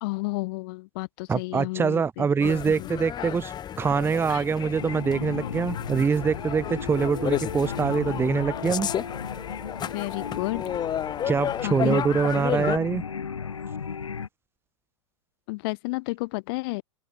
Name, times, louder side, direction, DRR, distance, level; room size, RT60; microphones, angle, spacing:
voice 1, 0.0-2.9 3.2-3.3 4.3-4.4 9.9-10.6 11.6-12.0 12.4-12.5 15.5-16.8, left 25 dB, 50° left, 1.1 m, -32 dB
voice 2, 1.3-8.9 11.2-13.0, right 5 dB, 15° right, 1.3 m, -24 dB
sound 1, 2.4-12.8, left 10 dB, 25° left, 4.2 m, -32 dB
sound 2, 4.8-14.3, left 6 dB, 85° left, 2.3 m, -35 dB
open air
hypercardioid pair, 105°, 16 cm